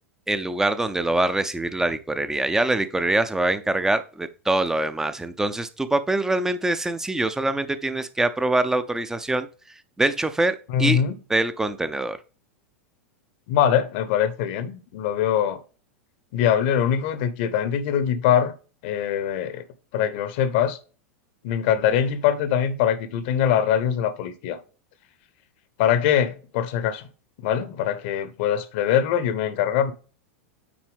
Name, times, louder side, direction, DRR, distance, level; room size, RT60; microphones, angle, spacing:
voice 1, 0.3-9.5 10.0-11.0 11.3-12.2, right 2 dB, 5° right, 0.7 m, -24 dB
voice 2, 10.7-11.2 13.5-15.6 16.3-18.5 18.8-19.6 19.9-20.8 21.4-24.6 25.8-27.1 27.4-29.9, left 9 dB, 50° left, 0.9 m, -23 dB
8.7 x 4.5 x 3.5 m
figure-of-eight pair, 90°, 7 cm